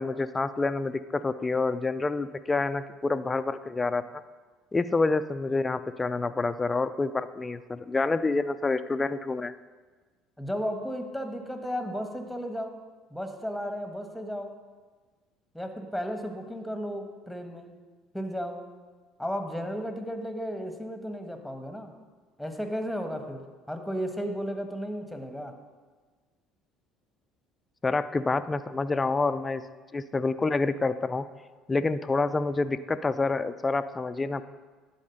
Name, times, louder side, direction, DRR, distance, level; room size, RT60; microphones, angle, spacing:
voice 1, 0.0-4.0 4.7-9.5 27.8-29.6 29.9-31.2 31.7-34.5, left 3 dB, 20° left, 12 dB, 0.4 m, -27 dB
voice 2, 10.4-12.7 13.1-14.5 15.5-17.7 18.1-18.6 19.2-21.9 22.4-25.5, equal, ahead, 5 dB, 1.3 m, -34 dB
10.5 x 4.2 x 6.7 m, 1.4 s
hypercardioid pair, 60°, 0 cm